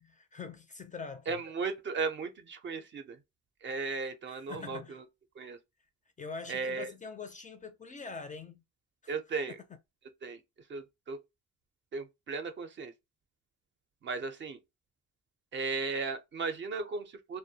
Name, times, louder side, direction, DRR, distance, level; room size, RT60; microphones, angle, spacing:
voice 1, 0.0-1.4 4.0-5.0 6.2-8.6 9.0-9.1, left 5 dB, 25° left, 0.4 m, -44 dB
voice 2, 1.3-3.2 3.6-5.0 5.4-5.6 6.5-6.9 9.1-9.6 10.2-10.4 10.7-11.2 11.9-12.9 14.0-14.6 15.5-17.4, right 4 dB, 40° right, 0.4 m, -36 dB
2.2 x 2.1 x 2.7 m
cardioid pair, 90°, 30 cm